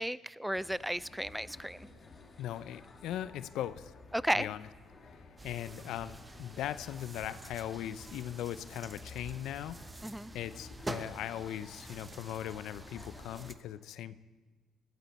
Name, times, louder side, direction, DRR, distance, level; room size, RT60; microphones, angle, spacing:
voice 1, 0.0-1.9 4.1-4.5 10.0-10.3, equal, 5° right, 20 dB, 0.3 m, -34 dB
sound 1, 0.5-13.5, left 4 dB, 40° left, 2.1 m, -54 dB
voice 2, 2.4-3.9 4.4-4.6 5.1-14.2, left 11 dB, 75° left, 16 dB, 0.4 m, -39 dB
sound 2, 5.4-13.5, right 2 dB, 20° right, 0.8 m, -47 dB
16.5 x 13.0 x 4.2 m, 1.3 s
supercardioid pair, 65°, 0 cm